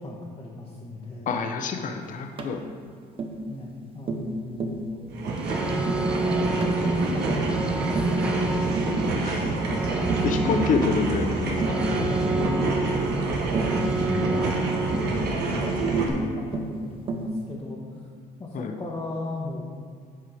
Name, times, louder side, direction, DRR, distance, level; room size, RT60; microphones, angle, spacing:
voice 1, 0.0-1.3 3.5-5.2 6.4-8.8 11.7-13.1 13.9-14.6 15.0-18.1 18.4-19.6, left 2 dB, 25° left, -5 dB, 1.0 m, -37 dB
voice 2, 1.3-2.6 9.2-9.4 10.2-11.8 18.5-18.7, left 5 dB, 50° left, 5 dB, 0.7 m, -27 dB
Tap, 2.4-2.6 3.2-3.4 4.1-4.3 4.6-4.8 5.3-5.5 5.8-6.1 6.6-6.8 7.3-7.5 7.9-8.2 8.8-9.0 9.4-9.7 10.1-10.3 10.7-10.9 11.6-11.9 12.3-12.5 13.5-13.8 14.9-15.1 15.9-16.2 16.5-16.8 17.1-17.3, right 3 dB, 30° right, 0.7 m, -31 dB
sound 1, 5.1-16.1, right 3 dB, 75° right, 1.2 m, -27 dB
sound 2, 5.4-15.3, right 2 dB, 5° right, 0.3 m, -29 dB
7.7 x 4.7 x 4.9 m, 2.1 s
cardioid pair, 110°, 17 cm